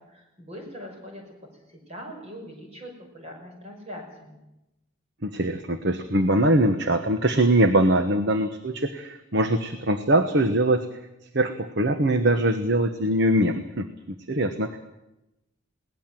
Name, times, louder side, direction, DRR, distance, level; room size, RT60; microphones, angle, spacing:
voice 1, 0.1-1.2 1.9-4.4, equal, 30° right, 2 dB, 5.7 m, -41 dB
voice 2, 5.2-10.9 11.3-13.9 14.3-14.8, right 1 dB, 50° right, 8 dB, 1.2 m, -22 dB
21.0 x 18.5 x 7.7 m, 0.93 s
head